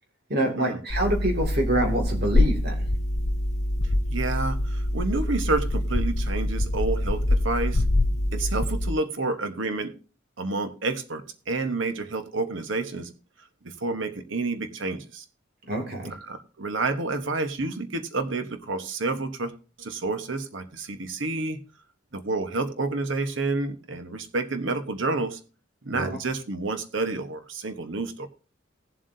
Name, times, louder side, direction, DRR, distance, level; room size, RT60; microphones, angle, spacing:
voice 1, 0.3-2.9 15.7-16.1 25.9-26.2, right 1 dB, 50° right, 3 dB, 2.2 m, -26 dB
sound 1, 0.9-8.9, left 1 dB, 35° left, 0.5 m, -25 dB
voice 2, 4.1-7.8 8.3-9.9 10.4-13.1 13.6-15.2 16.2-19.5 19.8-21.6 22.1-25.4 25.8-28.3, right 3 dB, 75° right, 8 dB, 1.2 m, -29 dB
19.0 x 7.6 x 2.7 m, 0.35 s
head